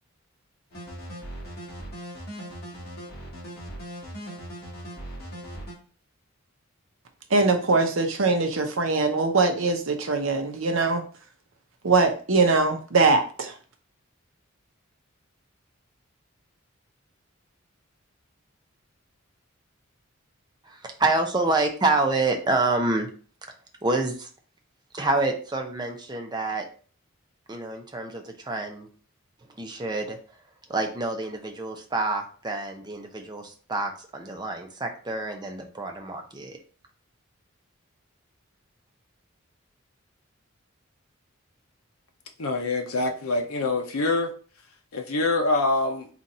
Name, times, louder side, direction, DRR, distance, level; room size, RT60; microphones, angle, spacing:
sound 1, 0.7-5.7, equal, 45° left, 1.7 m, -39 dB
voice 1, 7.3-11.0 11.8-13.5, right 3 dB, 70° right, 0.8 m, -22 dB
voice 2, 20.6-23.1 23.8-24.3 24.9-26.6 27.5-28.9 29.6-30.2 30.7-36.6, right 2 dB, 20° right, 0.6 m, -27 dB
voice 3, 42.4-44.3 44.9-46.1, left 2 dB, 85° left, 0.7 m, -25 dB
3.9 x 2.5 x 4.1 m
head